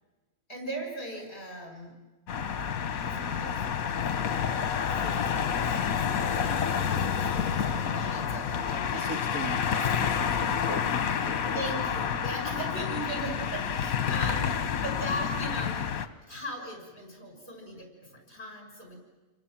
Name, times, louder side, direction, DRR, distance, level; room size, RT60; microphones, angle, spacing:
voice 1, 0.5-2.0 2.9-3.6 4.1-9.1 11.5-19.0, right 1 dB, 45° left, 2 dB, 6.2 m, -39 dB
sound 1, 2.3-16.1, left 7 dB, 75° left, 1.5 m, -29 dB
voice 2, 8.9-11.6 14.8-15.1, right 3 dB, 80° right, 5 dB, 2.4 m, -41 dB
sound 2, 9.7-10.6 11.7-12.6 13.7-14.6, equal, 30° right, 5.5 m, -55 dB
29.5 x 23.5 x 7.5 m, 1.2 s
omnidirectional pair, 1.5 m